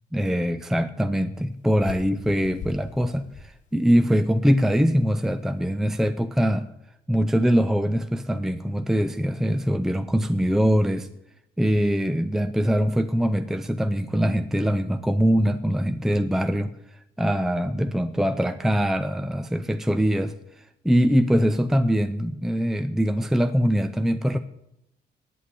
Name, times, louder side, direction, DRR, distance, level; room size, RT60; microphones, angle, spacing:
voice 1, 0.1-6.7 7.1-11.1 11.6-16.7 17.2-20.3 20.8-24.4, equal, ahead, 10 dB, 0.5 m, -23 dB
sound 1, 1.8-4.2, left 4 dB, 45° left, 1.1 m, -41 dB
9.5 x 8.4 x 8.4 m, 0.81 s
cardioid pair, 165°, 17 cm